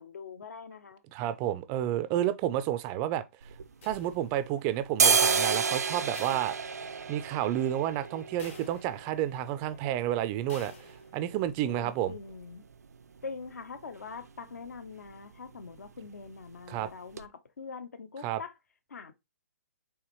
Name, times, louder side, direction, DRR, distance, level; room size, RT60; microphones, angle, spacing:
voice 1, 0.0-1.0 11.7-12.6 13.2-17.3 17.6-18.5 18.9-19.1, left 5 dB, 80° left, 0.8 m, -43 dB
voice 2, 1.1-3.3 3.8-6.6 7.1-12.1 16.7-16.9 18.2-18.4, right 12 dB, 25° right, 0.3 m, -30 dB
sound 1, 3.4-4.5 4.8-12.5 12.8-12.9 13.2-13.8 14.1-14.3 14.6-14.8 15.1-15.8 16.1-16.3 16.8-16.9 17.2-17.3, right 5 dB, 90° right, 0.4 m, -31 dB
sound 2, 3.8-4.6 6.1-7.3 7.7-7.8 8.4-9.3 10.5-11.3, left 4 dB, 55° left, 1.8 m, -50 dB
4.8 x 3.3 x 3.0 m
hypercardioid pair, 145°, 9 cm